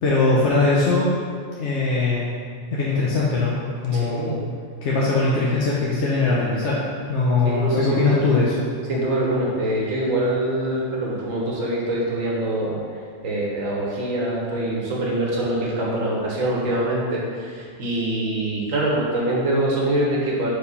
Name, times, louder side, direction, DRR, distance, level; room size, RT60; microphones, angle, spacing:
voice 1, 0.0-1.1 1.6-2.3 2.7-3.6 3.8-4.4 4.8-6.8 7.1-8.5, left 3 dB, 65° left, -6 dB, 1.1 m, -21 dB
voice 2, 3.9-4.4 7.4-8.3 8.9-12.8 13.2-20.5, right 1 dB, 80° right, -4 dB, 1.6 m, -24 dB
5.2 x 4.5 x 5.4 m, 2.1 s
omnidirectional pair, 1.3 m